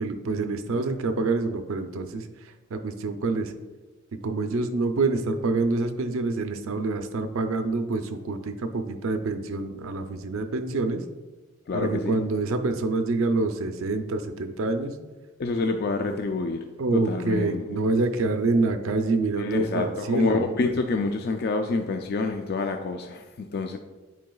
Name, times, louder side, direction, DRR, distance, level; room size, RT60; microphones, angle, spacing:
voice 1, 0.0-2.3 2.7-3.5 4.2-11.0 11.7-14.9 16.8-20.8, right 3 dB, 70° right, 7 dB, 0.5 m, -26 dB
voice 2, 11.7-12.1 15.4-16.6 16.9-17.8 19.4-23.8, left 3 dB, 50° left, 5 dB, 0.3 m, -27 dB
9.1 x 4.6 x 2.3 m, 1.2 s
head